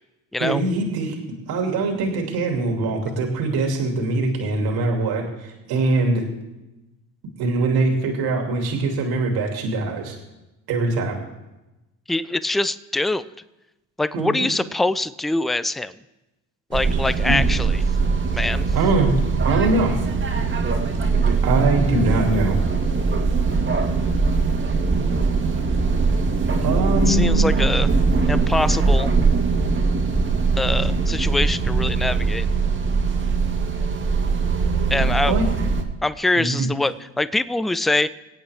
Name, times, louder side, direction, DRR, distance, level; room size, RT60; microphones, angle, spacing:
voice 1, 0.4-1.2 1.5-6.2 7.4-10.2 10.7-11.2 14.1-14.5 17.2-17.4 18.7-19.1 19.4-19.9 21.4-22.6 26.6-27.5 35.3-35.5 36.4-36.7, right 2 dB, 65° right, 2 dB, 2.6 m, -22 dB
voice 2, 12.1-13.2 14.0-15.9 16.7-17.8 18.3-18.7 27.1-27.9 28.3-29.1 30.6-32.5 34.9-35.4 36.0-38.1, left 2 dB, ahead, 15 dB, 0.4 m, -23 dB
sound 1, 16.7-35.8, right 4 dB, 30° right, 1.8 m, -21 dB
22.0 x 8.6 x 3.5 m, 1.0 s
supercardioid pair, 70°, 39 cm